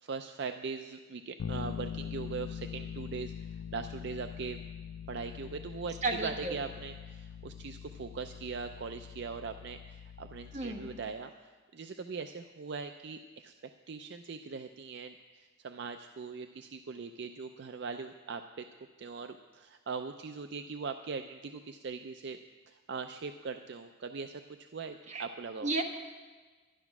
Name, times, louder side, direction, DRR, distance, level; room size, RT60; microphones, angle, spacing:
voice 1, 0.0-4.6 5.1-18.7 19.0-22.4 22.7-25.7, right 5 dB, 60° right, 7 dB, 0.4 m, -41 dB
Bass guitar, 1.4-11.3, left 8 dB, 80° left, 0.4 m, -43 dB
voice 2, 6.0-6.5 10.5-10.9 25.1-25.2 25.6-25.8, right 2 dB, 35° right, 2 dB, 1.3 m, -32 dB
11.5 x 11.0 x 6.0 m, 1.4 s
head